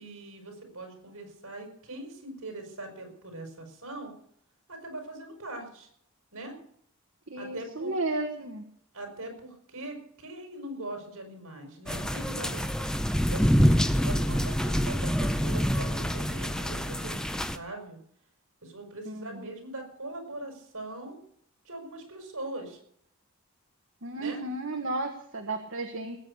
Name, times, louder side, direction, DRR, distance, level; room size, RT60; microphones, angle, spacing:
voice 1, 0.0-4.1 4.7-5.9 6.3-6.6 7.3-8.0 8.9-18.0 18.6-21.2 21.7-22.8 24.2-24.4, right 2 dB, 75° right, 3 dB, 5.3 m, -41 dB
voice 2, 7.3-8.7 19.0-19.5 24.0-26.2, right 2 dB, 60° right, 3 dB, 1.5 m, -33 dB
sound 1, 11.9-17.6, equal, 5° left, 0.6 m, -26 dB
19.0 x 8.7 x 6.7 m, 0.67 s
head